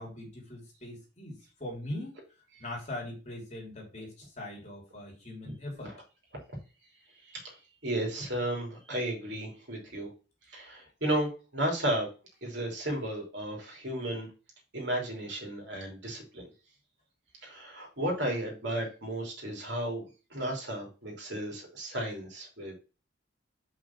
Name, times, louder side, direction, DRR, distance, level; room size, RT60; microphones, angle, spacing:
voice 1, 0.0-2.1 2.6-5.9, left 1 dB, 35° left, -2 dB, 3.0 m, -41 dB
voice 2, 7.8-10.1 10.5-12.1 12.4-14.3 14.7-16.5 17.4-20.0 20.3-22.7, right 1 dB, 65° right, 0 dB, 3.2 m, -33 dB
5.6 x 5.1 x 5.8 m, 0.32 s
head